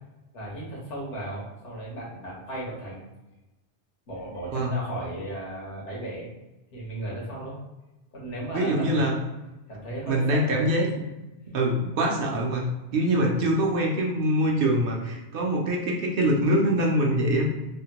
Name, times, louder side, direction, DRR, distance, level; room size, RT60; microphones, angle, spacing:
voice 1, 0.3-3.0 4.1-6.3 6.7-7.6 8.1-9.2 9.7-10.7, right 1 dB, 85° left, -4 dB, 1.4 m, -35 dB
voice 2, 8.5-9.2 10.1-11.1 11.5-17.5, right 1 dB, 60° right, -1 dB, 0.7 m, -24 dB
3.4 x 2.1 x 2.8 m, 1.0 s
omnidirectional pair, 1.2 m